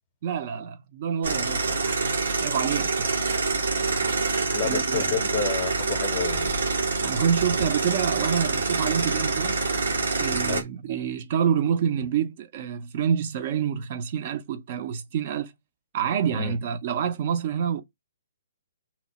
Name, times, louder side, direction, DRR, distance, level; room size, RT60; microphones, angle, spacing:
voice 1, 0.2-2.1 2.4-3.1 4.0-4.2 4.6-5.3 7.0-9.6 10.2-15.5 15.9-17.8, right 8 dB, 45° right, 0.4 m, -27 dB
sound 1, 1.2-10.6, right 3 dB, 85° right, 0.9 m, -26 dB
voice 2, 4.5-6.5 10.5-10.6 16.3-16.6, left 8 dB, 30° left, 0.6 m, -30 dB
2.9 x 2.1 x 4.0 m
hypercardioid pair, 155°, 0 cm